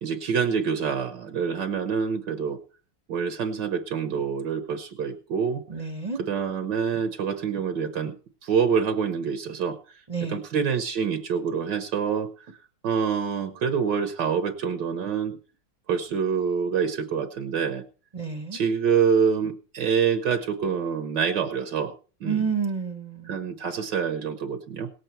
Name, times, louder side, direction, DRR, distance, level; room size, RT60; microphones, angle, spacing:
voice 1, 0.0-2.6 3.1-5.6 6.2-8.1 8.4-9.8 10.2-12.6 12.8-15.4 15.9-17.8 18.5-21.9 22.2-22.4 23.3-24.9, right 6 dB, 65° right, 8 dB, 1.5 m, -26 dB
voice 2, 5.7-6.2 10.1-10.4 18.1-18.6 22.2-23.4, right 5 dB, 25° right, 6 dB, 0.9 m, -29 dB
18.5 x 8.0 x 4.4 m, 0.37 s
omnidirectional pair, 2.1 m